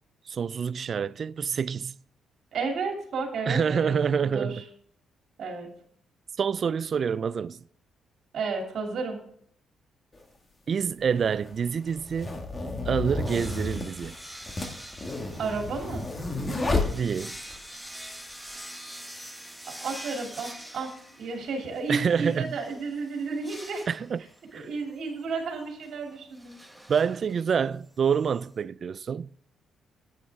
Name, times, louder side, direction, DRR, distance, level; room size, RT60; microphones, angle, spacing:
voice 1, 0.3-1.9 3.5-4.6 6.4-7.6 10.7-12.4 12.9-14.2 16.9-17.4 21.9-22.6 23.9-24.2 24.5-24.7 26.9-29.3, right 6 dB, 50° right, 0.3 m, -27 dB
voice 2, 2.5-3.9 4.2-4.6 5.4-5.7 8.3-9.2 15.4-16.1 19.8-20.9 21.2-23.9 24.5-26.6, right 4 dB, 65° right, 2.8 m, -32 dB
sound 1, 10.1-10.2 11.2-17.6, left 2 dB, 30° left, 1.9 m, -31 dB
sound 2, 13.3-28.6, equal, ahead, 1.3 m, -45 dB
10.5 x 9.0 x 3.6 m
cardioid pair, 90°, 0 cm